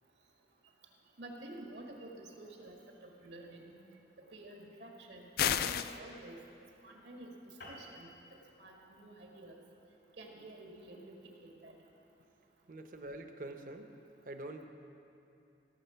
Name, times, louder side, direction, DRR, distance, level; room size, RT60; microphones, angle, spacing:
voice 1, 1.2-3.7 4.2-6.4 6.8-8.1 8.6-9.6 10.2-11.7, right 1 dB, 75° right, 0 dB, 1.7 m, -50 dB
sound 1, 5.4-6.0, left 9 dB, 55° left, 0.3 m, -30 dB
sound 2, 7.6-12.3, left 1 dB, 85° left, 2.2 m, -56 dB
voice 2, 12.7-13.9 14.2-14.7, right 1 dB, 50° right, 6 dB, 0.8 m, -45 dB
16.5 x 7.1 x 5.7 m, 2.8 s
head